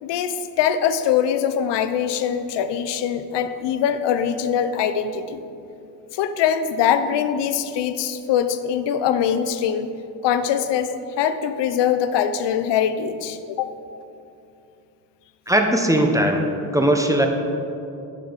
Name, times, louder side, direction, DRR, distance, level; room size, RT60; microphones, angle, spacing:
voice 1, 0.0-5.4 6.1-9.9 10.2-13.7, left 8 dB, 80° left, 11 dB, 0.6 m, -22 dB
voice 2, 15.5-16.5 16.7-17.3, right 1 dB, 10° right, 3 dB, 0.9 m, -18 dB
10.0 x 5.3 x 4.0 m, 2.7 s
cardioid pair, 65°, 42 cm